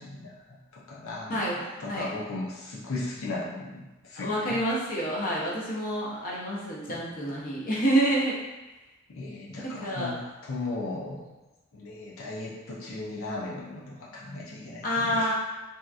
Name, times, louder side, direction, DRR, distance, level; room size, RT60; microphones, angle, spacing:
voice 1, 0.0-4.6 6.9-7.0 9.1-11.3 11.7-15.3, left 2 dB, 80° left, -4 dB, 0.6 m, -37 dB
voice 2, 1.3-2.1 4.2-8.4 9.6-10.2 14.8-15.3, right 1 dB, 45° left, -5 dB, 0.7 m, -28 dB
3.4 x 2.8 x 2.4 m, 1.1 s
head